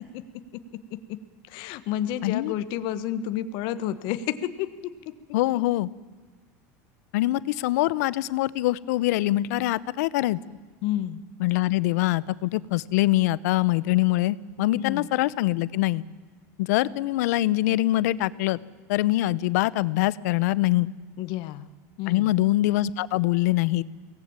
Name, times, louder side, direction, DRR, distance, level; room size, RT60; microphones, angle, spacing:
voice 1, 0.1-4.9 10.8-11.2 14.7-15.1 21.2-21.7 22.0-22.3, left 11 dB, 60° left, 12 dB, 1.4 m, -31 dB
voice 2, 2.2-2.5 5.3-5.9 7.1-10.4 11.4-16.0 16.6-18.6 18.9-20.9 22.1-23.8, left 16 dB, 80° left, 19 dB, 0.8 m, -24 dB
23.5 x 18.5 x 8.9 m, 1.4 s
supercardioid pair, 135°, 9 cm